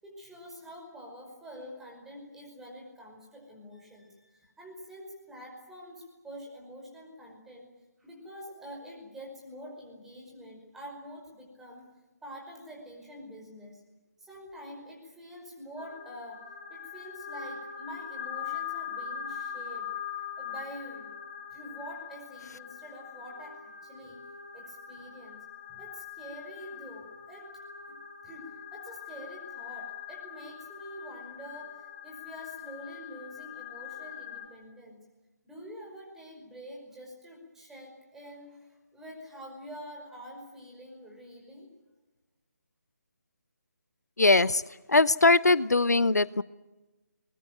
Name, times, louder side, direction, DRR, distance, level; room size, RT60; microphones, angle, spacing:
voice 1, 0.0-7.7 8.0-11.8 12.2-13.8 14.2-19.9 20.4-21.1 21.5-24.2 24.5-25.4 25.7-27.5 27.9-28.0 28.2-35.0 35.4-41.7, equal, 5° right, -1 dB, 5.4 m, -46 dB
sound 1, 15.8-34.5, left 8 dB, 35° left, 7.1 m, -42 dB
voice 2, 44.2-46.4, left 3 dB, 75° left, 19 dB, 0.8 m, -22 dB
23.0 x 21.0 x 9.1 m, 1.1 s
figure-of-eight pair, 150°, 9 cm